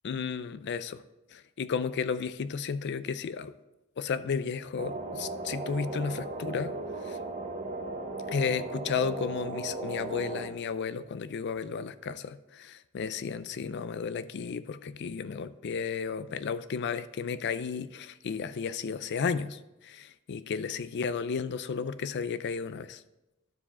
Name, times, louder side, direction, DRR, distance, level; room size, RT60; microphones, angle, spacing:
voice 1, 0.0-1.0 1.3-3.5 4.0-6.7 7.0-7.2 8.3-23.0, left 6 dB, 55° left, 14 dB, 0.4 m, -33 dB
sound 1, 4.8-10.5, right 2 dB, 35° right, 0.8 m, -36 dB
12.0 x 4.8 x 4.2 m, 0.99 s
head